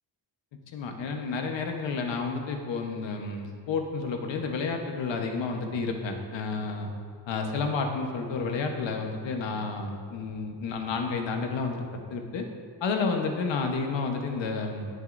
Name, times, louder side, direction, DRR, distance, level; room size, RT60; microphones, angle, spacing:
voice 1, 0.7-6.9 7.3-11.8 12.1-12.5 12.8-14.9, left 4 dB, 85° left, 3 dB, 1.1 m, -30 dB
17.5 x 6.5 x 2.6 m, 2.2 s
wide cardioid pair, 145°, 43 cm